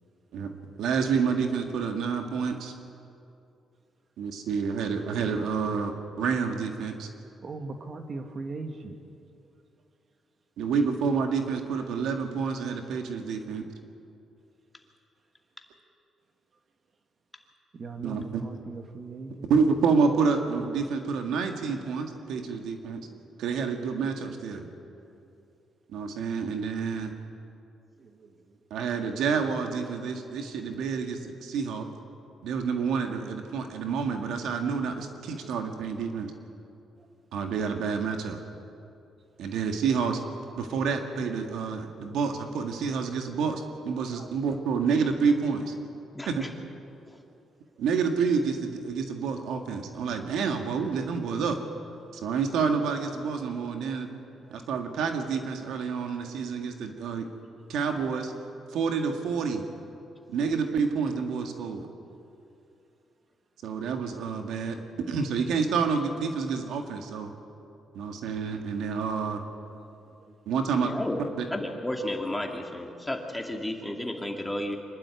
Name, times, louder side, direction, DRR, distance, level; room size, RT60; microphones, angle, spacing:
voice 1, 0.8-2.7 4.2-7.1 10.6-13.6 18.0-18.4 19.5-23.0 23.4-24.7 25.9-27.1 28.7-31.9 32.4-36.3 37.3-38.4 39.4-40.2 40.6-45.7 46.3-46.4 47.8-51.6 52.2-54.1 54.5-57.3 57.7-58.3 58.7-59.6 60.3-61.9 63.6-64.8 65.1-67.3 67.9-69.4 70.5-70.9 71.4-71.5, right 5 dB, 80° right, 5 dB, 1.9 m, -28 dB
voice 2, 7.4-8.9 17.7-19.5 22.4-22.5 28.0-28.1 35.4-35.5 44.1-44.3 54.4-54.6, right 3 dB, 45° right, 6 dB, 1.8 m, -39 dB
voice 3, 70.8-71.2 71.5-74.8, left 1 dB, 10° left, 2 dB, 2.5 m, -32 dB
25.0 x 12.0 x 9.7 m, 2.6 s
cardioid pair, 90°, 0 cm